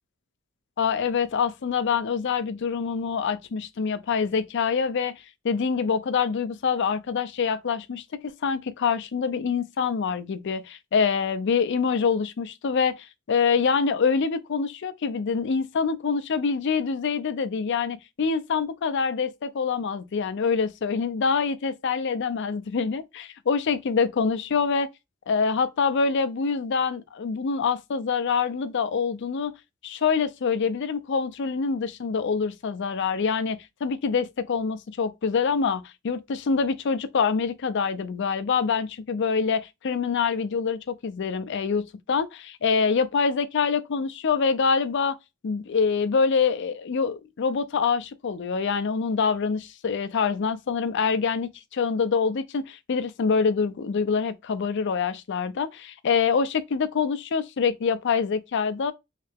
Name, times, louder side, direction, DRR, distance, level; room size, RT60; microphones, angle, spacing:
voice 1, 0.8-24.9 25.3-29.5 29.8-41.8 42.1-45.2 45.4-58.9, left 5 dB, 60° left, 0.4 m, -25 dB
3.2 x 2.8 x 3.3 m
head